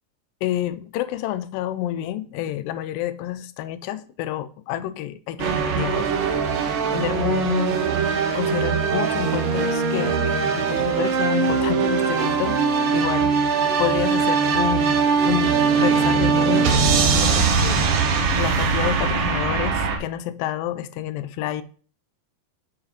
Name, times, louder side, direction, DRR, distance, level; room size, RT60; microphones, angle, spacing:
voice 1, 0.4-6.1 6.5-7.8 8.3-13.3 13.8-15.0 15.3-16.8 17.1-17.9 18.4-21.6, left 12 dB, 85° left, 2.3 m, -29 dB
sound 1, 5.4-20.0, right 5 dB, 75° right, 2.7 m, -21 dB
7.2 x 4.7 x 5.0 m
omnidirectional pair, 4.0 m